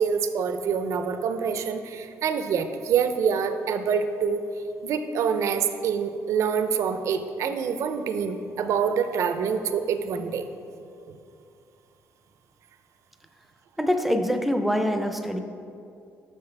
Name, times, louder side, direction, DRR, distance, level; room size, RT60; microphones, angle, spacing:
voice 1, 0.0-4.4 4.8-10.4, right 6 dB, 65° right, 9 dB, 0.4 m, -26 dB
voice 2, 13.8-15.4, equal, ahead, 6 dB, 0.4 m, -24 dB
6.4 x 5.7 x 3.3 m, 2.5 s
cardioid pair, 85°, 6 cm